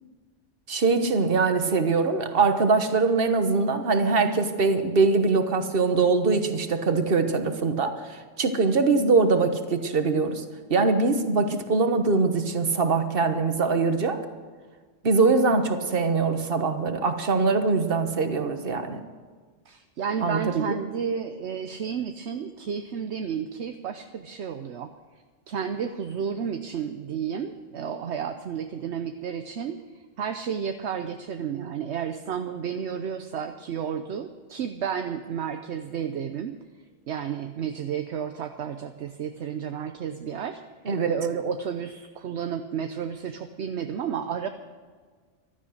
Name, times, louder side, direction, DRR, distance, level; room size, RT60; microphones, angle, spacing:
voice 1, 0.7-10.4 10.7-14.2 15.0-19.0 20.2-20.7 40.9-41.1, right 4 dB, 50° right, 8 dB, 1.4 m, -23 dB
voice 2, 19.7-24.9 25.5-29.8 30.2-36.6 37.1-40.6 41.1-44.5, right 7 dB, 65° right, 7 dB, 1.0 m, -32 dB
15.0 x 12.5 x 6.4 m, 1.5 s
omnidirectional pair, 1.2 m